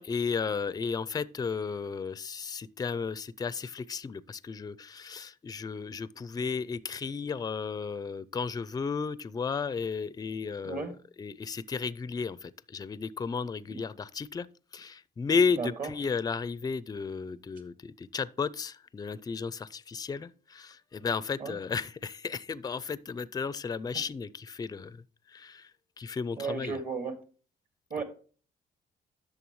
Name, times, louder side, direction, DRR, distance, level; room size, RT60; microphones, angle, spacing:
voice 1, 0.0-10.9 11.2-14.5 14.7-25.0 25.3-25.7 26.0-26.8 28.0-28.1, left 5 dB, 20° left, 0.4 m, -33 dB
voice 2, 10.6-11.0 13.7-13.8 15.6-15.9 21.4-21.6 26.4-27.2 27.9-28.0, right 4 dB, 50° right, 2.0 m, -34 dB
11.0 x 6.7 x 3.1 m
cardioid pair, 110°, 18 cm